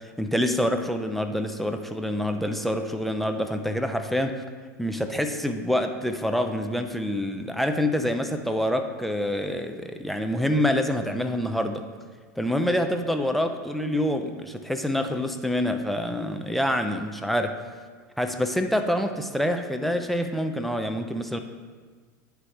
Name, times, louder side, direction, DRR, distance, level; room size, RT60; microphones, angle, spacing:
voice 1, 0.2-4.4 4.8-11.9 12.4-17.6 18.2-21.4, left 1 dB, ahead, 6 dB, 0.5 m, -26 dB
9.9 x 4.7 x 3.3 m, 1.5 s
figure-of-eight pair, 85°, 10 cm